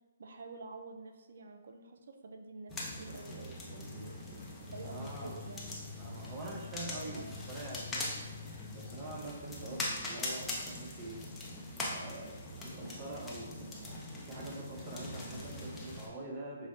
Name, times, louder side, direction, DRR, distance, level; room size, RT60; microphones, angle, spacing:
voice 1, 0.2-4.3 4.7-5.8 7.1-7.3 9.6-9.9, right 3 dB, 70° right, 5 dB, 0.5 m, -48 dB
sound 1, 2.7-16.1, left 2 dB, 10° left, 0.6 m, -42 dB
sound 2, 3.6-9.3, left 9 dB, 70° left, 1.0 m, -50 dB
voice 2, 4.8-5.4 6.0-8.2 8.7-11.3 11.9-16.7, right 2 dB, 25° right, -2 dB, 0.7 m, -45 dB
5.4 x 2.1 x 3.1 m, 1.2 s
hypercardioid pair, 145°, 0 cm